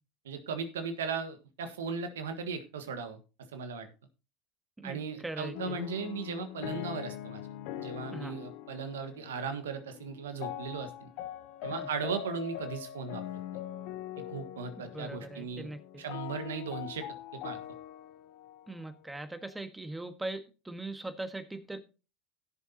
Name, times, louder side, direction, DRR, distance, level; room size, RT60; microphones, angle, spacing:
voice 1, 0.2-3.2 3.5-3.9 4.8-7.4 7.8-11.1 11.6-13.2 14.2-15.7 16.0-17.1 17.3-17.6, right 5 dB, 85° right, 1.5 m, -37 dB
voice 2, 4.8-5.8 8.1-8.4 11.7-11.9 14.8-15.8 18.7-21.8, right 2 dB, 10° right, 1.5 m, -40 dB
sound 1, 5.5-19.5, left 11 dB, 65° left, 0.9 m, -42 dB
16.0 x 7.0 x 2.9 m
hypercardioid pair, 85°, 0 cm